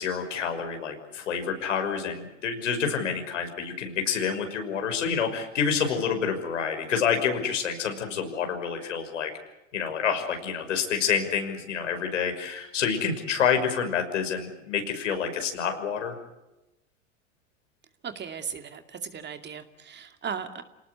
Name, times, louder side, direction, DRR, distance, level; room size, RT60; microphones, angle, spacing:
voice 1, 0.0-9.3 9.7-16.1, left 7 dB, 85° left, 5 dB, 6.0 m, -28 dB
voice 2, 18.0-20.6, right 7 dB, 30° right, 7 dB, 2.5 m, -37 dB
28.5 x 19.0 x 8.2 m, 0.97 s
hypercardioid pair, 95°, 36 cm